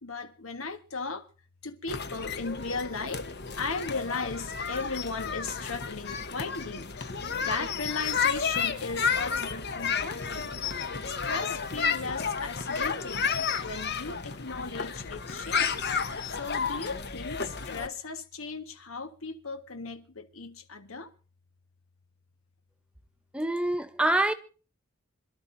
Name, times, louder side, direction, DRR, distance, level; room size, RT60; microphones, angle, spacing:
voice 1, 0.0-1.3 1.6-3.3 3.5-10.5 11.1-15.8 16.3-21.1, left 4 dB, 90° left, 1.5 m, -37 dB
sound 1, 1.9-17.9, left 6 dB, 55° left, 1.1 m, -32 dB
voice 2, 23.3-24.3, right 1 dB, 5° right, 0.8 m, -25 dB
26.5 x 12.0 x 2.7 m
head